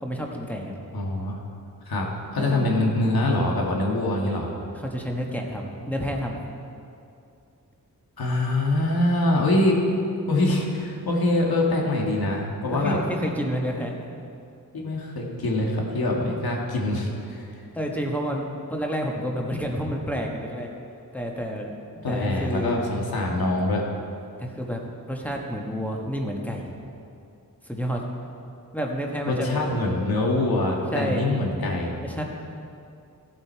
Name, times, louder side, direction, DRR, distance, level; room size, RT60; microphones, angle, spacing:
voice 1, 0.0-0.8 2.4-2.8 4.7-6.5 12.7-13.9 17.7-20.7 21.1-21.7 22.1-22.9 24.4-24.8 25.1-26.8 27.6-28.0 28.7-29.6 30.9-31.2 32.0-32.2, equal, 5° left, 0 dB, 1.2 m, -29 dB
voice 2, 0.9-1.4 1.9-4.5 8.2-9.8 10.3-13.0 14.7-17.7 22.0-23.8 29.3-32.0, left 1 dB, 85° left, -1 dB, 1.9 m, -24 dB
15.5 x 7.8 x 4.6 m, 2.5 s
wide cardioid pair, 160°, 36 cm